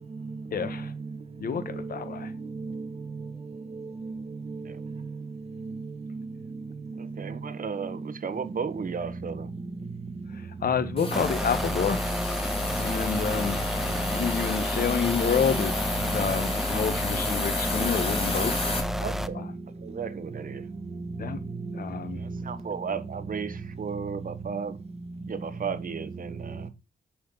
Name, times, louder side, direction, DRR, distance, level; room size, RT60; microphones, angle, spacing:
voice 1, 0.5-0.9 1.4-2.3 10.6-12.0 12.8-13.5 14.1-15.7 16.1-18.5 19.3-19.4 21.2-21.4 21.8-22.2, left 6 dB, 60° left, 1.3 m, -28 dB
voice 2, 1.7-2.0 2.4-2.9 3.7-4.9 5.6-5.8 6.1-6.2 11.3-12.4 12.8-12.9 13.4-13.6 13.8-14.5 15.5-16.3 18.1-18.3 18.6-19.0 20.9-21.2 21.6-22.6, right 3 dB, 35° right, 1.8 m, -36 dB
voice 3, 7.0-9.5 19.0-19.5 19.8-20.6 22.2-24.8 25.3-26.7, right 6 dB, 55° right, 1.3 m, -34 dB
Hiss, 11.0-18.8, left 2 dB, 30° left, 4.2 m, -32 dB
sound 1, 11.1-19.3, left 1 dB, ahead, 0.7 m, -31 dB
8.2 x 6.4 x 3.9 m
cardioid pair, 85°, 17 cm